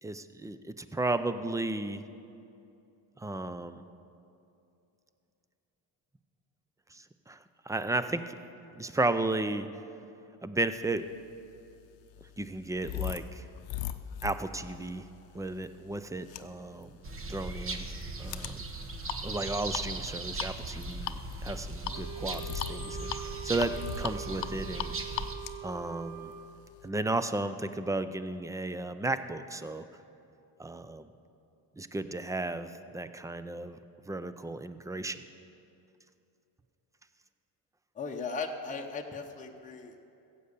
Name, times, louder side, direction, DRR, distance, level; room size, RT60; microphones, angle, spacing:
voice 1, 0.0-2.0 3.2-3.8 6.9-7.4 7.7-8.4 8.8-9.7 10.4-11.1 12.4-13.4 14.2-15.0 15.3-16.9 17.3-17.9 18.2-18.6 19.2-24.9 25.6-26.3 26.8-29.9 30.6-31.1 31.8-33.8 34.1-35.3, right 2 dB, 10° right, 11 dB, 0.3 m, -34 dB
sound 1, 11.2-26.9, left 12 dB, 65° left, 0.7 m, -41 dB
sound 2, 17.0-25.4, right 2 dB, 30° right, 1.1 m, -38 dB
Wind instrument woodwind instrument, 21.9-26.4, right 9 dB, 60° right, 3.9 m, -43 dB
voice 2, 38.0-40.0, left 4 dB, 15° left, 1 dB, 0.9 m, -37 dB
15.5 x 8.0 x 6.7 m, 2.7 s
cardioid pair, 110°, 47 cm